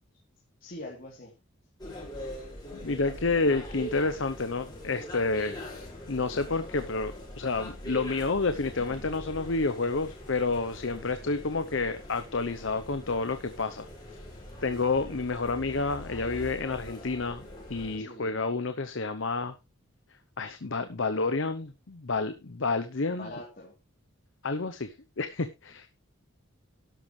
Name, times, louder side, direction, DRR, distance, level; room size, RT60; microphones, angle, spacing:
voice 1, 0.6-1.3 18.0-18.4 23.2-23.7, left 1 dB, 40° left, -4 dB, 3.3 m, -43 dB
sound 1, 1.8-18.0, left 1 dB, 20° left, 5.4 m, -42 dB
voice 2, 2.8-5.6 6.1-13.9 14.6-17.4 17.7-19.5 20.4-23.3 24.4-25.9, left 3 dB, 60° left, 10 dB, 0.8 m, -29 dB
12.5 x 11.0 x 3.3 m, 0.26 s
head